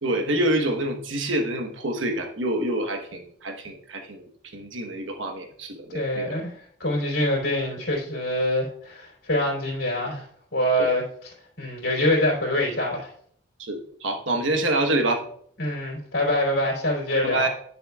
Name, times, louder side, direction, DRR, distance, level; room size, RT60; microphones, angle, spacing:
voice 1, 0.0-4.3 4.5-6.3 10.8-10.9 13.6-15.2 17.2-17.5, right 1 dB, 80° right, 4 dB, 1.2 m, -26 dB
voice 2, 5.9-10.2 10.5-11.0 11.6-13.1 15.6-17.5, left 1 dB, 80° left, -3 dB, 3.2 m, -25 dB
10.5 x 6.8 x 2.4 m, 0.62 s
head